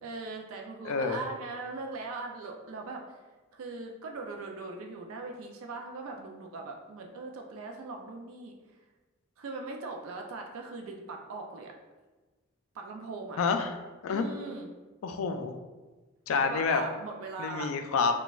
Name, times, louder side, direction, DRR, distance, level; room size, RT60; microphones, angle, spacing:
voice 1, 0.0-3.2 3.5-8.5 9.4-11.7 12.7-13.4 14.1-14.7 16.3-17.7, right 3 dB, 75° right, 2 dB, 0.4 m, -40 dB
voice 2, 0.8-1.2 13.4-13.7 14.0-14.3 15.0-15.5 16.3-16.8 17.4-18.1, left 5 dB, 75° left, 6 dB, 0.3 m, -28 dB
4.0 x 2.3 x 2.3 m, 1.2 s
head